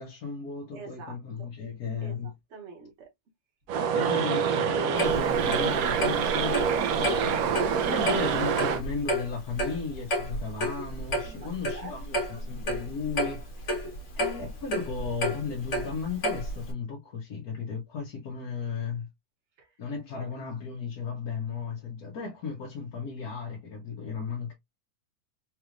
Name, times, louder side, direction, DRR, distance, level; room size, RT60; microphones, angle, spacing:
voice 1, 0.0-2.3 3.9-13.9 14.2-19.1 19.8-24.5, left 5 dB, 75° left, 1.4 m, -35 dB
voice 2, 0.7-1.5 2.0-3.1 11.2-12.2 19.6-19.7 20.1-20.3, right 4 dB, 50° right, 1.2 m, -47 dB
sound 1, 3.7-8.8, right 7 dB, 75° right, 1.0 m, -26 dB
Clock, 5.0-16.7, equal, 50° left, 1.7 m, -31 dB
4.0 x 3.1 x 2.4 m
omnidirectional pair, 1.6 m